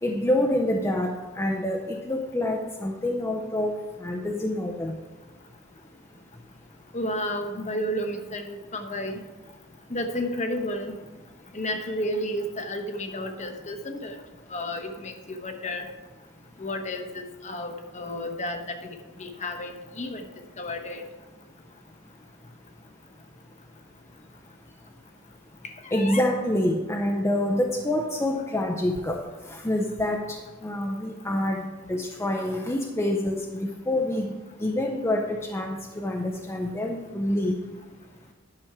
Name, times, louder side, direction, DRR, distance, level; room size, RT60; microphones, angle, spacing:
voice 1, 0.0-5.0 25.9-34.3 34.6-37.6, left 1 dB, 15° left, 1 dB, 0.6 m, -27 dB
voice 2, 6.9-9.2 9.9-10.9 11.5-14.2 14.5-15.9 16.6-20.3 20.6-21.0 25.8-26.2, left 1 dB, 35° left, 6 dB, 0.9 m, -32 dB
10.5 x 6.1 x 4.7 m, 1.2 s
head